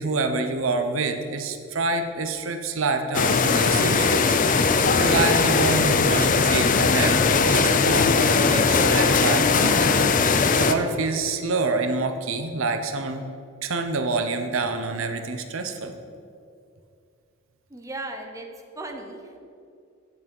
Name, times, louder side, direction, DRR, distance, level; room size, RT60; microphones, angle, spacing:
voice 1, 0.0-4.3 4.7-8.1 8.4-13.2 13.6-16.0, right 3 dB, 80° right, 7 dB, 0.8 m, -27 dB
sound 1, 3.1-10.7, left 4 dB, 40° left, 0.5 m, -19 dB
voice 2, 17.7-18.5 18.7-19.4, right 2 dB, 15° right, 2 dB, 0.9 m, -36 dB
9.4 x 8.2 x 5.3 m, 2.4 s
head